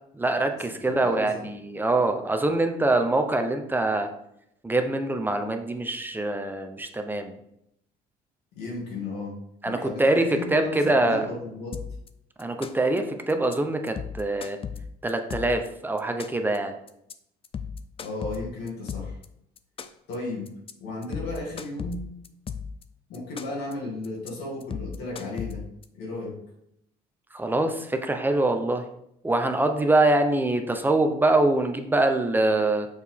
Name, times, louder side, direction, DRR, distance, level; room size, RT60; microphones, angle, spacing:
voice 1, 0.1-4.1 4.6-7.4 9.6-10.3 10.5-11.3 12.4-14.6 15.0-16.8 27.3-28.9 29.2-32.9, right 2 dB, 10° right, 5 dB, 0.7 m, -24 dB
voice 2, 1.0-1.5 8.6-9.4 9.6-11.8 18.0-19.2 20.1-20.5 20.8-22.0 23.1-25.6 25.9-26.4, left 2 dB, 80° left, -4 dB, 2.3 m, -34 dB
sound 1, 11.7-12.1 12.4-13.0 13.3-13.6 13.9-15.7 16.0-16.6 16.9-17.1 17.4-19.3 19.6-20.2 20.5-20.7 21.0-22.8 23.1-23.7 24.0-24.3 24.6-25.9, left 6 dB, 35° left, 0.4 m, -35 dB
6.4 x 4.6 x 3.6 m, 0.76 s
cardioid pair, 110°, 17 cm